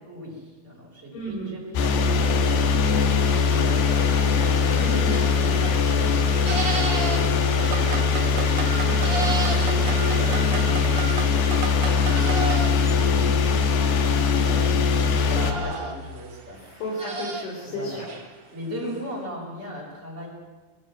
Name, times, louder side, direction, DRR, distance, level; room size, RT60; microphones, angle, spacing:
voice 1, 0.1-4.9 5.2-8.1 8.4-16.6 17.6-18.0 18.5-20.3, equal, 15° right, -5 dB, 5.4 m, -39 dB
voice 2, 1.1-1.5 4.8-5.2 16.6-18.1 18.7-18.9, left 1 dB, 85° left, -4 dB, 6.9 m, -33 dB
sound 1, 1.8-15.5, left 5 dB, 65° left, 3.8 m, -21 dB
sound 2, 3.2-18.4, right 3 dB, 35° right, 2.0 m, -36 dB
sound 3, 7.6-12.7, right 7 dB, 85° right, 1.5 m, -34 dB
23.5 x 22.5 x 7.6 m, 1.3 s
omnidirectional pair, 5.3 m